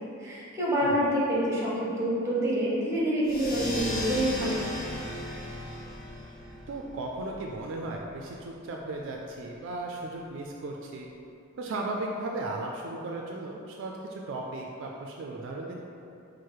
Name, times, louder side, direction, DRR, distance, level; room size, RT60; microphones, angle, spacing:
voice 1, 0.2-4.7, equal, 15° right, -6 dB, 0.9 m, -27 dB
sound 1, 3.2-8.3, left 1 dB, 65° left, 0.8 m, -37 dB
voice 2, 6.7-11.1 11.6-15.8, right 2 dB, 60° right, 0 dB, 0.3 m, -36 dB
4.7 x 2.0 x 4.5 m, 2.7 s
head